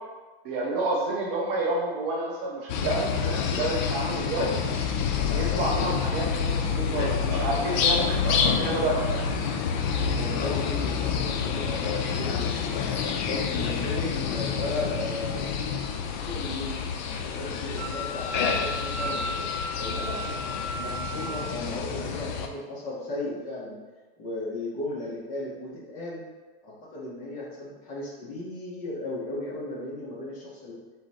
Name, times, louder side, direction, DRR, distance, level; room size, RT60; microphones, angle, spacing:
voice 1, 0.4-4.6 5.3-9.2, right 2 dB, 30° right, -3 dB, 0.4 m, -29 dB
sound 1, 2.7-22.5, left 6 dB, 45° left, 0.5 m, -28 dB
voice 2, 10.1-12.9 13.2-15.6 16.1-19.5 19.8-23.8 24.2-26.2 26.6-30.8, left 2 dB, 25° left, -4 dB, 1.0 m, -36 dB
Wind instrument woodwind instrument, 17.8-21.5, equal, 75° right, 0.9 m, -35 dB
3.9 x 2.9 x 4.1 m, 1.3 s
supercardioid pair, 155°, 31 cm